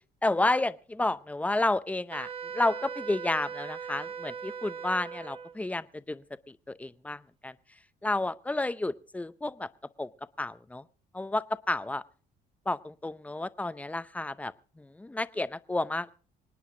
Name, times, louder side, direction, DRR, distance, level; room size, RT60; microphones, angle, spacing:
voice 1, 0.2-7.5 8.0-9.7 10.0-10.1 10.4-10.9 11.1-12.0 12.7-16.1, left 2 dB, 10° left, 15 dB, 0.6 m, -31 dB
Wind instrument woodwind instrument, 2.1-5.6, right 6 dB, 30° right, 1.0 m, -39 dB
26.0 x 9.3 x 3.7 m, 0.40 s
cardioid pair, 110°, 17 cm